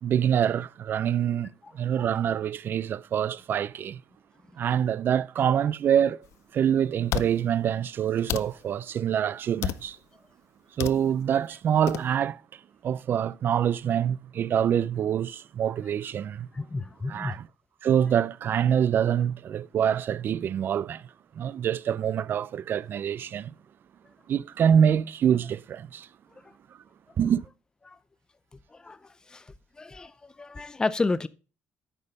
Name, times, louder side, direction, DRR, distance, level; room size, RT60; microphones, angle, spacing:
voice 1, 0.0-4.0 4.6-6.2 6.5-10.0 10.8-16.5 17.1-17.5 17.8-21.1 21.4-23.5 24.3-26.1 27.2-27.5, right 9 dB, 45° right, 0.4 m, -25 dB
sound 1, 6.2-6.3 7.1-7.3 8.3-8.5 9.6-9.9 10.8-11.0 11.9-12.0, left 12 dB, 65° left, 0.5 m, -30 dB
voice 2, 16.5-17.4 27.9-28.0 28.7-29.5 29.8-31.3, left 3 dB, 15° left, 0.5 m, -31 dB
8.9 x 6.2 x 5.4 m
cardioid pair, 130°, 5 cm